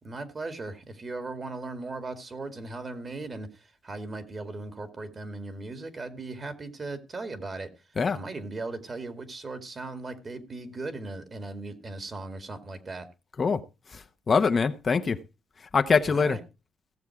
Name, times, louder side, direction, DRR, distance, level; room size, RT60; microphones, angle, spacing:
voice 1, 0.0-7.7 8.1-13.1 16.1-16.4, right 3 dB, 35° right, 2.3 m, -38 dB
voice 2, 13.9-15.2 15.7-16.4, left 5 dB, 40° left, 0.9 m, -24 dB
16.5 x 7.2 x 4.7 m
cardioid pair, 90°, 0 cm